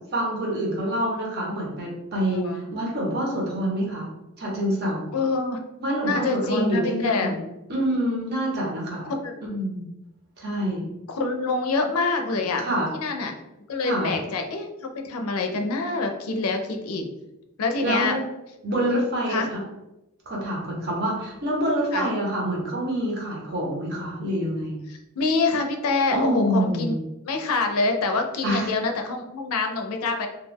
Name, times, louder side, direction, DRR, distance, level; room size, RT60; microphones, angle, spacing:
voice 1, 0.1-4.1 4.4-5.1 5.8-7.4 7.7-9.1 9.4-9.8 10.4-10.9 12.6-12.9 13.8-14.1 17.8-18.2 18.6-19.6 20.3-24.8 26.1-27.0 28.4-28.7, equal, 50° right, -2 dB, 0.8 m, -26 dB
voice 2, 2.3-2.6 5.1-5.6 6.0-7.3 9.0-9.3 11.1-12.6 12.9-13.3 13.7-17.1 17.6-18.2 18.7-18.9 19.3-19.5 21.9-22.1 24.9-27.0 27.3-30.3, left 3 dB, 80° left, 4 dB, 0.4 m, -26 dB
2.3 x 2.2 x 3.3 m, 0.92 s
head